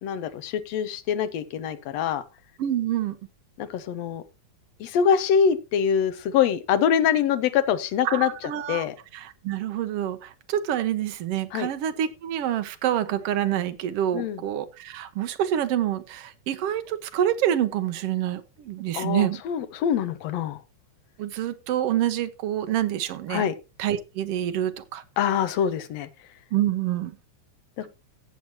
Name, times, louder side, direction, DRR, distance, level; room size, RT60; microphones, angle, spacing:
voice 1, 0.0-2.2 3.6-4.2 4.8-8.3 8.7-9.0 11.5-11.7 14.1-14.4 18.9-20.6 23.3-23.5 25.2-26.1 27.8-27.9, left 8 dB, 70° left, 2.0 m, -24 dB
voice 2, 2.6-3.2 8.0-8.8 9.1-19.4 21.2-23.5 23.8-25.0 26.5-27.1, right 11 dB, 70° right, 1.6 m, -27 dB
15.5 x 7.3 x 3.0 m
omnidirectional pair, 3.5 m